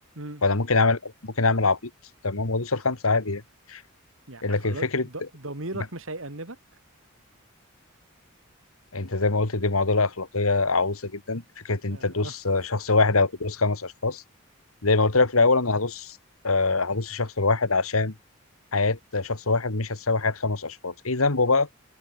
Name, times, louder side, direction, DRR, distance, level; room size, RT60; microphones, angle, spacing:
voice 1, 0.4-1.9 2.2-3.4 3.7-3.8 4.4-5.0 8.9-14.2 14.8-16.2 16.4-18.1 18.7-21.7, left 3 dB, 85° left, 2.1 m, -24 dB
voice 2, 4.3-6.6 11.9-12.3, right 2 dB, 70° right, 3.3 m, -37 dB
head